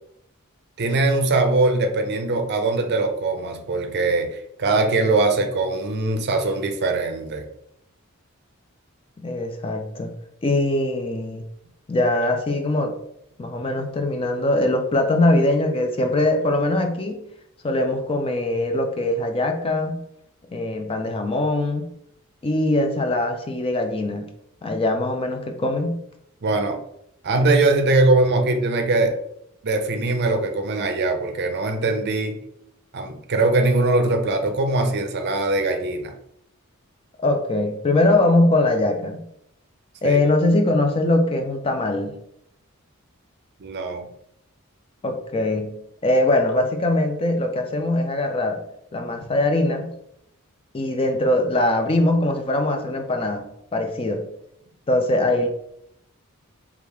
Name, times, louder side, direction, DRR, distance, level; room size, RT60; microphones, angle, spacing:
voice 1, 0.8-7.4 26.4-26.8 27.2-29.1 29.6-32.4 32.9-36.1 40.0-40.2 43.6-44.1, right 2 dB, 50° right, 6 dB, 0.5 m, -21 dB
voice 2, 9.2-10.1 10.4-11.4 11.9-13.0 13.4-17.2 17.6-20.0 20.5-21.9 22.4-24.3 24.6-26.0 37.2-39.2 40.0-42.2 45.0-45.7 46.0-48.6 48.9-49.9 50.7-54.2 54.9-55.5, left 2 dB, 25° left, 5 dB, 0.4 m, -22 dB
3.5 x 2.4 x 4.5 m, 0.76 s
head